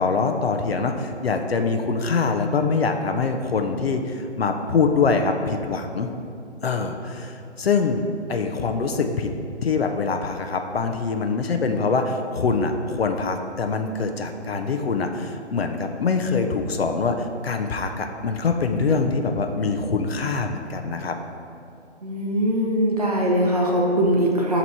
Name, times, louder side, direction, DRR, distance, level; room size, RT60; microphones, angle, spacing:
voice 1, 0.0-6.1 6.6-9.3 9.6-17.2 17.4-21.2, left 4 dB, 60° left, 5 dB, 0.5 m, -24 dB
voice 2, 22.0-24.6, equal, 35° right, -2 dB, 0.7 m, -21 dB
6.9 x 3.0 x 4.5 m, 2.6 s
hypercardioid pair, 170°, 35 cm